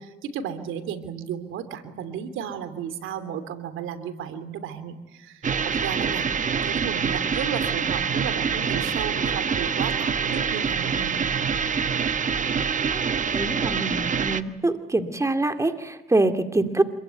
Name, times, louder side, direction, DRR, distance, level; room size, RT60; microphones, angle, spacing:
voice 1, 0.0-6.3 6.6-11.2, right 8 dB, 85° right, 11 dB, 3.0 m, -34 dB
sound 1, 5.4-14.4, right 6 dB, 40° right, 1.3 m, -25 dB
voice 2, 13.3-16.8, right 2 dB, 15° right, 7 dB, 2.4 m, -24 dB
27.0 x 22.0 x 9.3 m, 1.1 s
cardioid pair, 90°, 20 cm